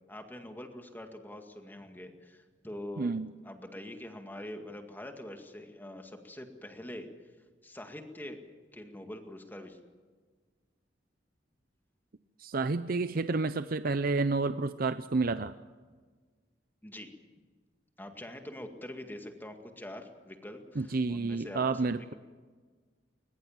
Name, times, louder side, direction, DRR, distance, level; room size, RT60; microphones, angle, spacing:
voice 1, 0.1-3.1 3.4-7.1 7.6-9.8 16.8-17.1 18.0-21.8, left 1 dB, 10° left, 5 dB, 2.0 m, -44 dB
voice 2, 3.0-3.3 12.4-15.5 20.8-22.1, right 3 dB, 50° right, 12 dB, 0.6 m, -30 dB
21.0 x 20.5 x 7.3 m, 1.5 s
head